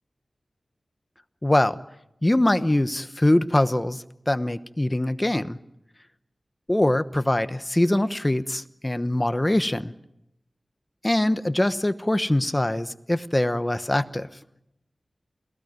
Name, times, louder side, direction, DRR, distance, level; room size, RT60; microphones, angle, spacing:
voice 1, 1.4-1.8 2.2-5.6 6.7-9.9 11.0-14.3, left 1 dB, 20° left, 12 dB, 1.0 m, -23 dB
28.5 x 18.5 x 9.5 m, 0.86 s
wide cardioid pair, 90°, 0 cm